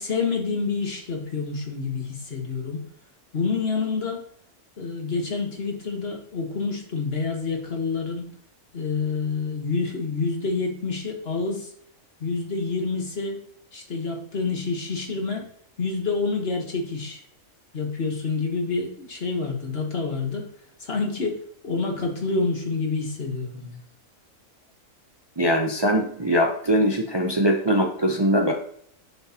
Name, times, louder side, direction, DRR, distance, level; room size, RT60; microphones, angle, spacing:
voice 1, 0.0-2.9 3.3-4.2 4.8-8.4 8.7-11.7 12.2-13.4 13.7-15.5 15.8-17.2 17.7-20.5 20.8-23.8, left 4 dB, 50° left, 2 dB, 1.5 m, -28 dB
voice 2, 25.4-28.5, equal, 25° right, 1 dB, 0.7 m, -21 dB
7.2 x 6.3 x 2.9 m, 0.64 s
omnidirectional pair, 1.4 m